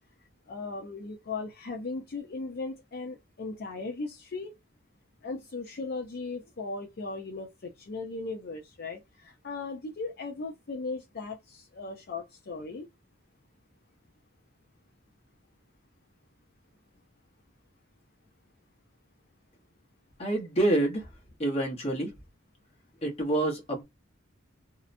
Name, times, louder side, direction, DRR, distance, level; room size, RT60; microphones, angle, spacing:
voice 1, 0.5-4.5 5.2-12.9, left 3 dB, 50° left, 0.5 m, -37 dB
voice 2, 20.2-21.1 21.4-22.1 23.0-23.8, right 1 dB, 30° left, 0.9 m, -27 dB
2.8 x 2.1 x 2.5 m
head